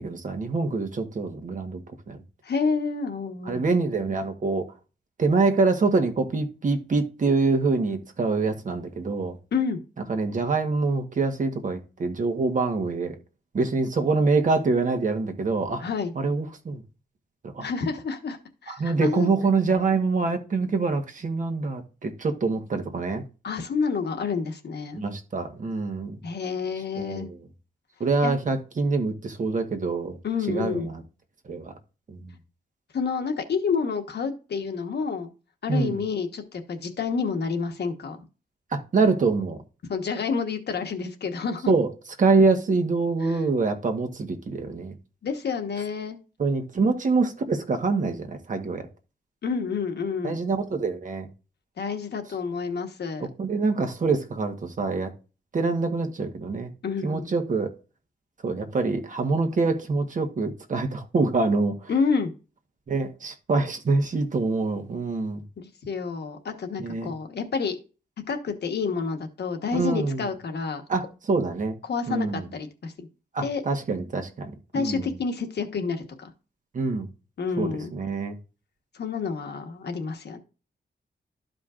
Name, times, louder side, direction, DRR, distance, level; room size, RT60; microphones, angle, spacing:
voice 1, 0.0-2.2 3.4-4.7 5.2-9.4 10.1-13.1 13.5-15.8 16.1-16.8 17.4-17.7 18.7-23.2 24.9-26.2 27.0-27.4 28.0-30.2 30.5-31.0 31.4-31.7 32.1-32.4 35.7-36.0 38.7-39.6 41.7-41.9 42.2-44.9 46.4-48.9 50.2-51.3 53.2-55.1 55.5-56.7 57.0-57.7 58.4-61.9 62.9-65.4 66.8-67.1 69.7-70.3 70.9-71.8 72.1-72.5 73.3-75.1 76.7-77.1 77.6-78.4, right 3 dB, 45° right, 1.2 m, -25 dB
voice 2, 2.4-3.8 9.5-9.8 15.8-16.1 17.6-18.4 18.6-19.3 23.4-25.0 26.2-27.3 28.2-28.3 30.2-30.9 32.9-35.3 35.6-38.2 39.9-41.7 43.2-43.4 45.2-46.2 49.4-50.4 51.8-53.3 56.8-57.3 61.9-62.3 65.6-67.8 68.3-70.8 71.8-73.1 73.4-73.6 74.7-76.3 77.4-77.9 78.9-80.4, left 5 dB, 65° left, 1.3 m, -29 dB
13.0 x 5.2 x 2.5 m
wide cardioid pair, 175°, 18 cm